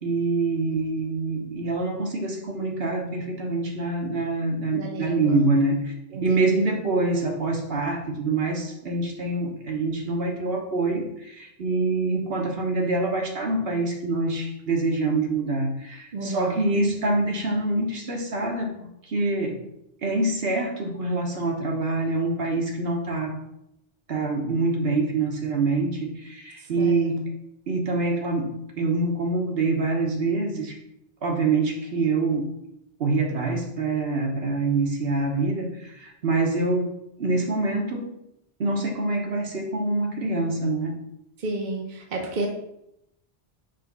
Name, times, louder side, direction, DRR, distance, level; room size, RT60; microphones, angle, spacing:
voice 1, 0.0-18.7 19.0-19.6 20.0-23.4 24.1-27.3 27.7-30.8 31.2-32.5 33.0-38.1 38.6-40.9, right 3 dB, 70° right, 1 dB, 1.3 m, -25 dB
voice 2, 4.7-5.4 6.1-6.7 16.1-16.6 26.8-27.1 41.4-42.5, right 2 dB, 50° right, 1 dB, 0.9 m, -32 dB
5.2 x 3.4 x 5.3 m, 0.81 s
omnidirectional pair, 1.1 m